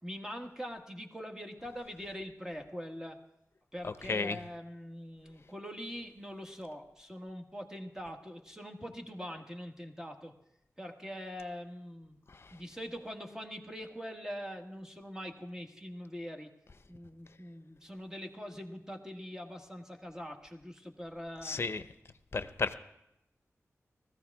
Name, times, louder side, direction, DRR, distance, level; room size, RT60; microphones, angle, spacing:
voice 1, 0.0-3.2 3.7-10.3 10.8-12.2 12.5-16.5 16.9-21.6, equal, 10° right, 3 dB, 1.5 m, -43 dB
voice 2, 3.8-4.4 12.3-12.6 21.4-21.8 22.3-22.7, left 4 dB, 50° left, 11 dB, 0.7 m, -34 dB
19.5 x 14.5 x 3.5 m, 0.83 s
wide cardioid pair, 80°, 5 cm